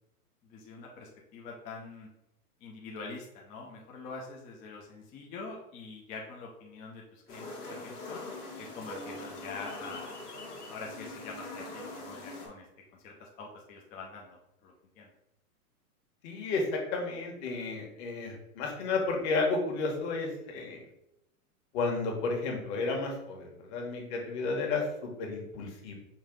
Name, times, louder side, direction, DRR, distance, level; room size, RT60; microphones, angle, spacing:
voice 1, 0.4-2.1 2.6-8.2 8.6-10.2 10.7-12.7 12.9-15.1, left 4 dB, 20° left, -1 dB, 0.5 m, -45 dB
sound 1, 7.3-12.5, left 2 dB, 85° left, 1.5 m, -42 dB
voice 2, 16.2-20.8 21.7-25.9, left 3 dB, 50° left, 0 dB, 1.5 m, -32 dB
5.5 x 2.4 x 3.7 m, 0.83 s
hypercardioid pair, 125°, 45 cm